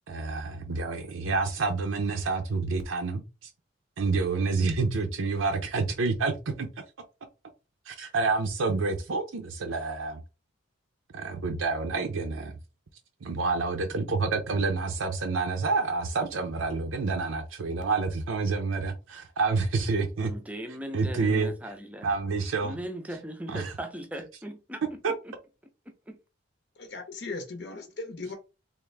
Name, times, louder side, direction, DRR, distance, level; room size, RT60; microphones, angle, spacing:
voice 1, 0.1-3.5 4.0-6.7 7.9-10.2 11.1-12.6 13.2-20.3 20.9-21.5 22.0-22.8 23.5-23.7 25.0-25.1, right 4 dB, 80° right, 0.6 m, -28 dB
voice 2, 20.2-22.1 22.6-25.0 25.2-25.3 26.1-26.2, right 1 dB, 5° right, 0.5 m, -38 dB
voice 3, 26.8-28.3, left 3 dB, 55° left, 0.7 m, -38 dB
3.5 x 2.5 x 3.2 m
head